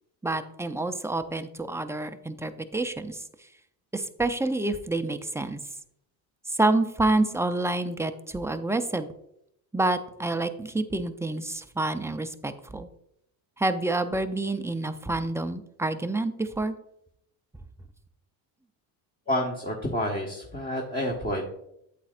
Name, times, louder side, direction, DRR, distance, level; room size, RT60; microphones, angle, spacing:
voice 1, 0.2-3.2 3.9-5.6 6.5-9.1 9.7-12.9 13.6-16.7, right 2 dB, 5° right, 9 dB, 0.5 m, -28 dB
voice 2, 19.3-21.5, left 1 dB, 20° left, 0 dB, 1.4 m, -29 dB
8.6 x 8.3 x 2.5 m, 0.77 s
supercardioid pair, 85°, 47 cm